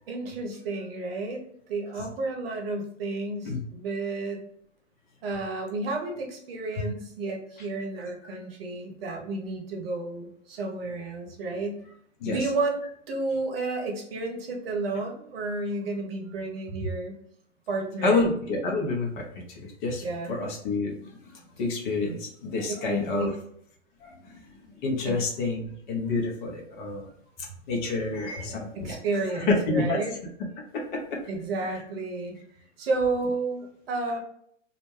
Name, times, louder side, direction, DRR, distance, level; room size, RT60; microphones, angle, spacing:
voice 1, 0.1-1.4 1.7-4.4 5.2-11.8 12.2-12.8 13.1-17.1 17.7-18.3 20.0-20.3 22.9-23.3 25.1-25.2 28.7-30.1 31.3-32.4 32.8-34.2, right 3 dB, 50° right, 1 dB, 0.8 m, -31 dB
voice 2, 18.0-23.3 24.0-27.1 27.7-29.0 29.3-30.0 30.7-31.0, left 3 dB, 40° left, -1 dB, 0.8 m, -29 dB
2.5 x 2.1 x 3.2 m, 0.68 s
hypercardioid pair, 120°, 37 cm